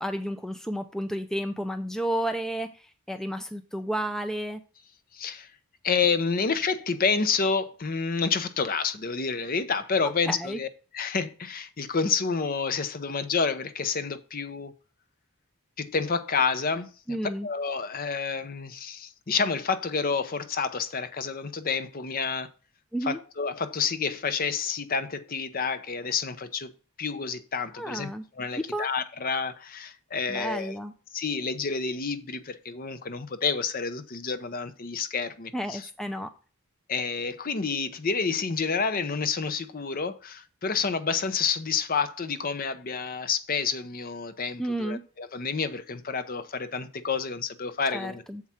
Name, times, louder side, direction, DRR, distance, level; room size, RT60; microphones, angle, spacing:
voice 1, 0.0-4.6 10.0-10.6 17.1-17.5 22.9-23.2 27.7-28.2 28.5-28.9 30.3-30.9 35.5-36.3 44.6-45.0 47.9-48.4, right 1 dB, ahead, 0.4 m, -32 dB
voice 2, 5.1-5.5 5.8-10.7 10.9-14.7 15.8-17.2 17.4-22.5 23.0-26.7 27.0-28.1 28.4-30.8 31.1-35.9 36.9-48.2, left 5 dB, 40° left, 0.6 m, -29 dB
7.4 x 4.7 x 5.7 m
head